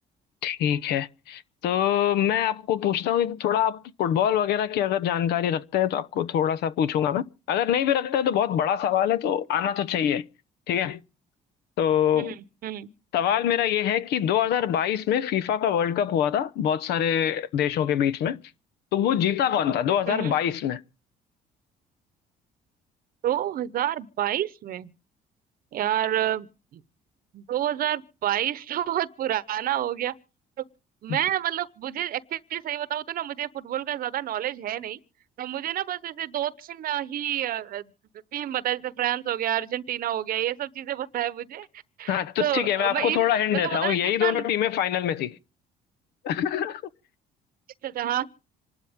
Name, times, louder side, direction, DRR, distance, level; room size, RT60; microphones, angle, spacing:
voice 1, 0.4-10.2 10.7-11.0 11.8-12.3 13.1-18.4 18.9-20.8 31.1-31.2 42.1-45.4 46.2-46.8, left 10 dB, 75° left, 0.8 m, -24 dB
voice 2, 20.1-20.4 23.2-24.9 25.7-26.5 26.7-26.8 27.3-30.1 31.0-35.0 35.4-37.9 38.3-41.7 42.0-44.4 47.8-48.3, right 12 dB, 60° right, 0.9 m, -29 dB
27.0 x 12.0 x 3.5 m
cardioid pair, 110°, 17 cm